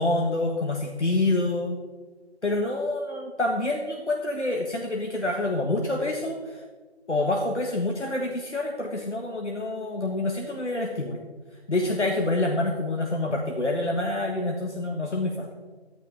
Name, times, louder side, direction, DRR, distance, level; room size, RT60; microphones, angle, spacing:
voice 1, 0.0-1.8 2.4-6.6 7.1-11.2 11.7-15.5, left 2 dB, 90° left, 1 dB, 1.7 m, -27 dB
14.5 x 12.0 x 3.6 m, 1.4 s
figure-of-eight pair, 170°, 34 cm